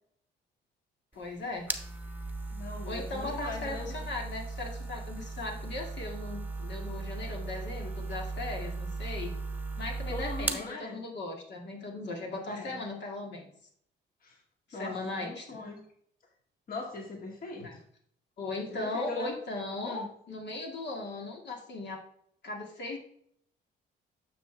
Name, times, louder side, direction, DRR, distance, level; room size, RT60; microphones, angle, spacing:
voice 1, 1.1-1.7 2.8-9.3 9.7-13.5 14.7-15.6 17.6-17.8 18.4-22.0 22.4-23.0, left 2 dB, 60° left, 0 dB, 2.1 m, -38 dB
sound 1, 1.1-10.7, right 3 dB, 10° right, 1.0 m, -37 dB
voice 2, 2.5-4.0 10.1-11.0 12.5-12.8 14.2-14.4 14.7-15.8 16.7-17.8 18.6-19.4 19.8-20.1, left 3 dB, 45° left, 1 dB, 2.0 m, -40 dB
10.0 x 6.5 x 3.4 m, 0.67 s
cardioid pair, 90°, 20 cm